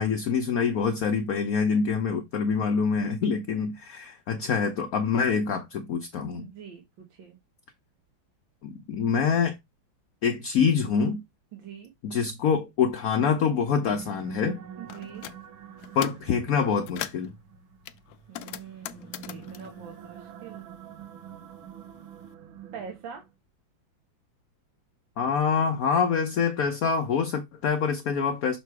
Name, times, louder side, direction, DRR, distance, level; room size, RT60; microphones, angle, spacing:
voice 1, 0.0-6.5 8.6-9.6 10.2-11.2 12.0-14.6 15.9-17.3 25.2-28.6, left 6 dB, 60° left, 1.1 m, -25 dB
voice 2, 6.4-7.4 11.5-11.9 14.8-15.3 18.3-20.8 22.7-23.3, right 7 dB, 75° right, 1.8 m, -44 dB
sound 1, 13.5-23.3, right 7 dB, 90° right, 1.7 m, -46 dB
sound 2, 14.9-15.4 15.8-16.3 16.7-17.3 17.9-20.8 21.1-22.2, left 12 dB, 80° left, 0.8 m, -40 dB
6.6 x 3.1 x 4.6 m
omnidirectional pair, 2.1 m